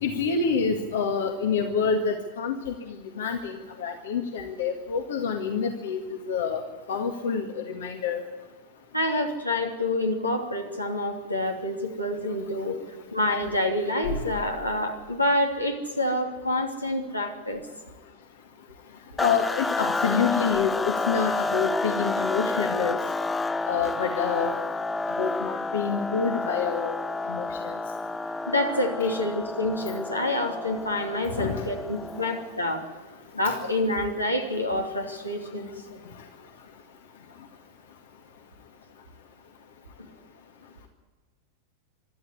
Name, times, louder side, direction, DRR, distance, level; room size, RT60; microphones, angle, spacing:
voice 1, 0.0-2.7 3.2-6.0 6.3-6.6 6.9-8.2 19.2-23.0 23.7-24.5 25.2-27.0 27.3-27.8 31.4-31.7 33.4-33.5, left 6 dB, 60° left, 5 dB, 1.9 m, -27 dB
voice 2, 8.9-12.8 13.1-17.7 28.5-32.9 33.3-35.7, left 1 dB, 85° left, 3 dB, 3.0 m, -27 dB
sound 1, 19.2-32.6, left 3 dB, 10° left, 0.8 m, -30 dB
25.0 x 13.0 x 9.9 m, 1.3 s
figure-of-eight pair, 90°, 0 cm